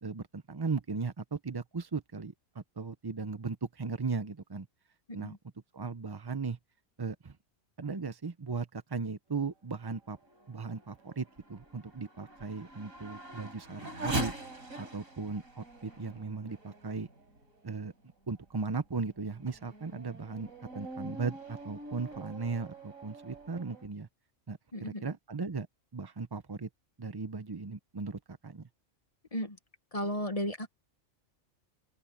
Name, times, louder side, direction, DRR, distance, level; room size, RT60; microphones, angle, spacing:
voice 1, 0.0-4.7 5.1-5.4 5.7-6.6 7.0-7.4 7.8-10.2 10.5-14.3 14.8-17.1 17.6-17.9 18.3-20.5 20.7-24.1 24.5-25.7 25.9-26.7 27.0-28.7, right 4 dB, 30° right, 0.4 m, -37 dB
Race car auto racing / Accelerating revving vroom, 9.9-17.8 18.4-18.5 19.1-23.9, right 1 dB, 90° right, 5.7 m, -43 dB
voice 2, 24.7-25.1 29.3-29.6 29.9-30.7, equal, 30° left, 1.3 m, -34 dB
open air
omnidirectional pair, 1.4 m